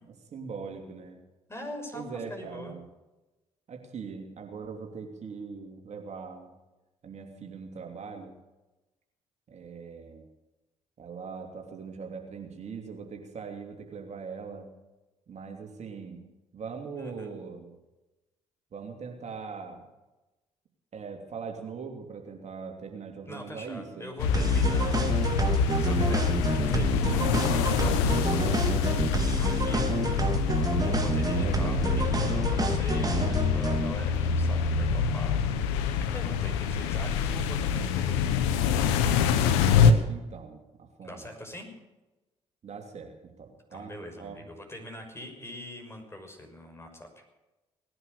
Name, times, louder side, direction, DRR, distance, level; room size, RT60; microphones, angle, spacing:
voice 1, 0.3-1.2 1.9-2.8 3.7-6.5 7.0-8.3 9.5-10.2 11.0-14.7 15.3-16.2 16.5-17.7 18.7-19.8 20.9-24.2 39.6-41.2 42.6-44.4, right 5 dB, 55° right, 3 dB, 2.9 m, -41 dB
voice 2, 1.5-2.8 17.0-17.3 23.3-25.2 25.7-35.4 35.8-38.3 41.0-41.7 43.7-47.2, left 1 dB, 20° left, 4 dB, 6.2 m, -43 dB
sound 1, 24.2-39.9, left 6 dB, 90° left, 1.1 m, -26 dB
sound 2, 24.3-33.9, right 3 dB, 25° right, 2.9 m, -29 dB
19.0 x 11.0 x 6.8 m, 1.1 s
hypercardioid pair, 50°, 14 cm